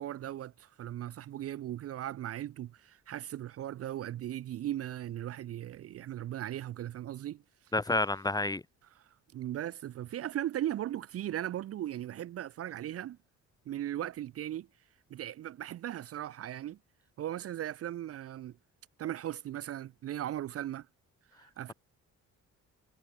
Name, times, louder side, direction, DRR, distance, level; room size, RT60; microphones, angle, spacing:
voice 1, 0.0-7.4 9.0-13.2 13.7-14.7 15.1-16.8 17.2-18.6 19.0-20.9 21.4-21.7, right 12 dB, 50° right, 0.5 m, -38 dB
voice 2, 7.7-8.6, left 2 dB, 15° left, 0.7 m, -29 dB
cardioid pair, 90°, 30 cm